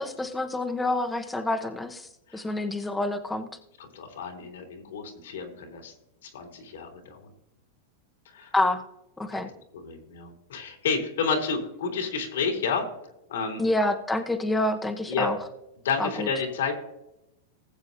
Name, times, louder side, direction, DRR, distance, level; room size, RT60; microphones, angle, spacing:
voice 1, 0.0-3.5 8.5-8.8 9.2-9.5 13.6-15.4 16.0-16.3, left 2 dB, 10° left, 4 dB, 1.1 m, -27 dB
voice 2, 3.8-5.9 6.2-7.3 8.2-8.5 9.3-9.4 9.7-12.9 13.3-13.6 15.1-15.3 15.8-16.7, left 5 dB, 80° left, 2 dB, 3.2 m, -30 dB
19.5 x 7.8 x 2.7 m, 0.87 s
hypercardioid pair, 120°, 0 cm